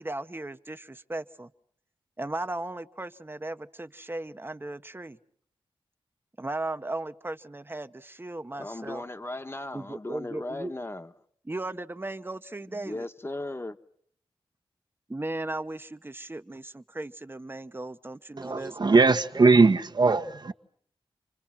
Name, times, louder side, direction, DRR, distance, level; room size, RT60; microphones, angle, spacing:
voice 1, 0.0-1.5 2.2-5.2 6.4-9.0 9.7-10.7 11.4-13.1 15.1-18.8 19.3-19.8, right 2 dB, 20° right, 1.1 m, -36 dB
voice 2, 8.6-11.1 12.7-13.8, left 2 dB, 25° left, 1.4 m, -37 dB
voice 3, 18.4-20.5, right 3 dB, 45° right, 1.3 m, -20 dB
30.0 x 25.5 x 5.9 m
cardioid pair, 70°, 10 cm